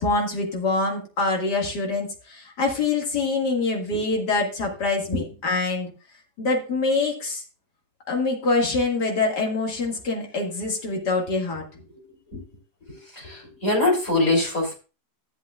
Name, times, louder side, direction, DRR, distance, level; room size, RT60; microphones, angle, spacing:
voice 1, 0.0-5.9 6.4-7.4 8.1-11.6, left 3 dB, 90° left, 0 dB, 2.5 m, -25 dB
voice 2, 12.9-14.7, left 2 dB, 50° left, 0 dB, 3.9 m, -23 dB
13.5 x 8.3 x 2.4 m, 0.33 s
omnidirectional pair, 1.7 m